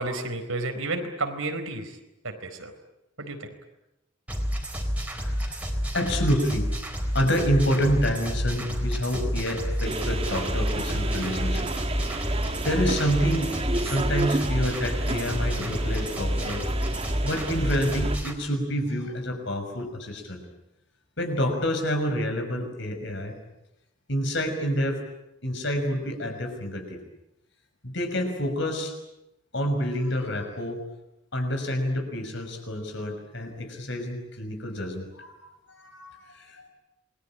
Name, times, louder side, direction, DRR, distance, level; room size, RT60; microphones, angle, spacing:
voice 1, 0.0-2.0 2.2-2.7 3.2-3.5, right 2 dB, 85° right, 6 dB, 4.4 m, -31 dB
sound 1, 4.3-18.3, equal, 5° right, 3.9 m, -29 dB
voice 2, 5.1-5.6 5.9-6.7 7.1-11.7 12.6-16.6 17.2-20.4 21.2-23.4 24.1-25.0 25.4-27.0 27.8-28.9 29.5-30.8 31.3-36.7, equal, 60° left, 5 dB, 6.1 m, -28 dB
sound 2, 9.8-18.2, right 2 dB, 30° right, 1.6 m, -31 dB
27.5 x 22.5 x 8.9 m, 0.90 s
head